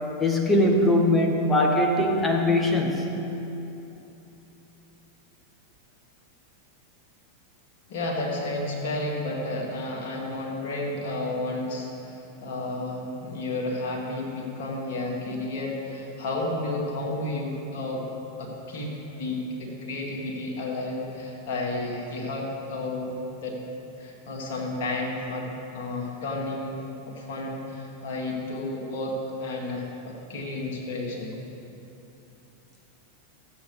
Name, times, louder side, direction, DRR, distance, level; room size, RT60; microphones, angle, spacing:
voice 1, 0.2-3.0, left 1 dB, 10° left, 1 dB, 1.3 m, -21 dB
voice 2, 7.9-18.0 18.4-23.1 23.4-23.6 24.0-25.5 25.7-26.8 27.0-31.3, left 2 dB, 55° left, -1 dB, 1.9 m, -32 dB
15.5 x 8.0 x 3.4 m, 2.9 s
figure-of-eight pair, 90°, 0 cm